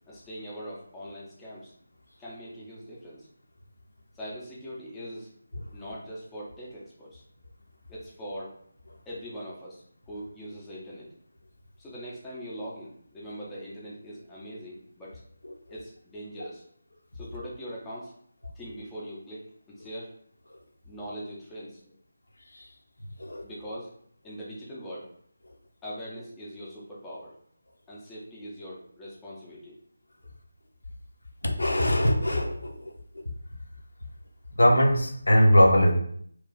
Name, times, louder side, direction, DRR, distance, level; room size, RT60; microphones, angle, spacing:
voice 1, 0.1-1.7 2.2-3.3 4.1-5.3 5.7-7.2 7.9-8.5 9.1-11.1 11.8-15.2 15.7-16.6 17.1-18.1 18.5-20.1 20.8-22.0 23.4-23.9 24.2-25.1 25.8-27.3 27.9-29.8, equal, 5° left, -7 dB, 0.6 m, -41 dB
voice 2, 31.4-32.9 33.2-33.3 34.6-35.9, equal, 65° left, 1 dB, 0.8 m, -21 dB
2.9 x 2.3 x 3.9 m, 0.63 s
figure-of-eight pair, 155°, 0 cm